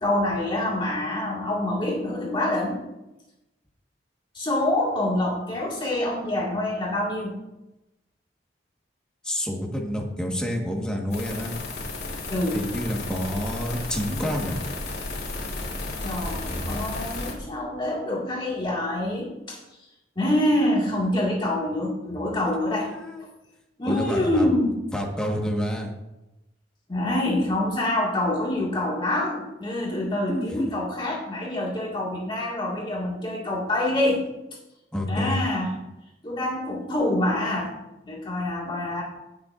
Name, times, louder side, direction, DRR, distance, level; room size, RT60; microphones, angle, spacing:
voice 1, 0.0-2.8 4.3-7.4 12.3-12.6 16.0-19.6 20.2-22.9 23.2-23.3 23.8-24.8 26.9-34.2 35.1-35.8 36.2-37.7 38.0-39.0, left 1 dB, 25° left, -4 dB, 1.9 m, -26 dB
voice 2, 9.2-11.5 12.5-14.6 22.7-23.2 23.8-24.5 24.9-25.9 30.3-30.7 34.9-35.4, equal, 5° left, 0 dB, 1.4 m, -28 dB
sound 1, 11.1-17.3, left 2 dB, 65° left, 2.9 m, -33 dB
16.5 x 6.9 x 2.5 m, 0.96 s
head